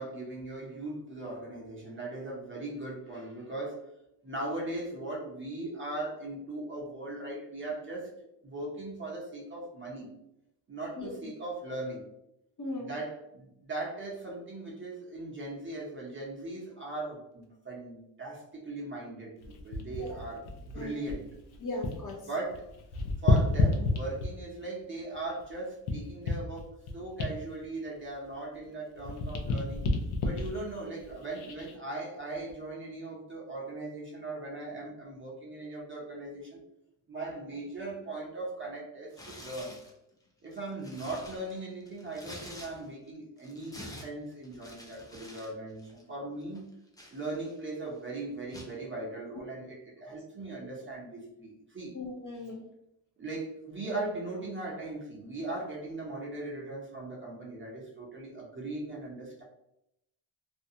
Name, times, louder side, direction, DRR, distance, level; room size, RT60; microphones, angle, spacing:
voice 1, 0.0-3.8 4.2-8.1 8.4-10.1 10.7-12.0 12.8-21.3 22.3-22.6 23.2-29.9 30.2-36.6 37.1-39.7 40.4-46.7 47.1-51.9 53.2-59.4, right 2 dB, 25° right, -3 dB, 0.7 m, -39 dB
voice 2, 12.6-12.9 20.0-20.2 20.7-21.0 21.6-22.3 50.0-50.2 51.9-52.7, left 2 dB, 40° left, -1 dB, 0.6 m, -38 dB
sound 1, 19.4-22.2 22.4-24.6 25.1-28.7 29.0-31.8 32.3-32.5, left 3 dB, 85° left, 0.6 m, -31 dB
Tearing, 39.1-39.9 40.4-43.1 43.4-45.5 45.8-46.0 46.5-47.7 48.5-48.8, left 1 dB, 10° left, 0.3 m, -48 dB
2.5 x 2.2 x 2.7 m, 0.82 s
cardioid pair, 120°, 48 cm